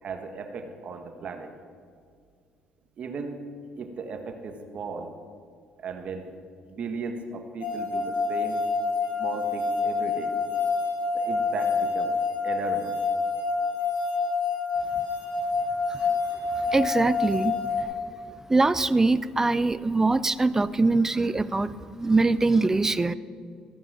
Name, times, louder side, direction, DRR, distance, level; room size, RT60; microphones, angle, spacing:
voice 1, 0.0-1.5 3.0-3.4 3.8-5.1 5.8-6.3 6.7-8.6 9.2-10.3 11.1-12.1 12.4-12.9, right 4 dB, 55° right, 6 dB, 1.4 m, -36 dB
sound 1, 7.6-17.8, left 4 dB, 65° left, 2.5 m, -27 dB
voice 2, 16.7-17.9 18.5-23.1, right 3 dB, 20° right, 15 dB, 0.5 m, -23 dB
15.5 x 5.5 x 7.7 m, 2.1 s
supercardioid pair, 70°, 3 cm